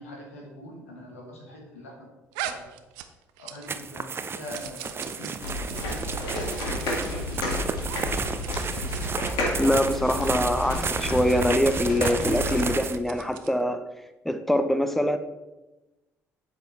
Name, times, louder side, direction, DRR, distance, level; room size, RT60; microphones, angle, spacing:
voice 1, 0.0-2.1 2.4-2.6 3.4-8.2 8.6-8.9, left 1 dB, 85° left, 0 dB, 1.9 m, -43 dB
sound 1, 2.3-3.8 4.1-7.4 7.8-8.0 8.3-8.5 8.8-9.0 9.4-9.8 10.4-10.6 10.8-10.9 11.7-13.6, right 11 dB, 70° right, 0.6 m, -41 dB
sound 2, 3.7-13.0, right 5 dB, 35° right, 0.6 m, -33 dB
sound 3, 5.4-12.7, left 1 dB, 70° left, 2.1 m, -31 dB
voice 2, 9.6-13.8 14.2-15.2, equal, 5° left, 9 dB, 0.8 m, -24 dB
8.0 x 7.3 x 4.1 m, 1.0 s
hypercardioid pair, 50°, 7 cm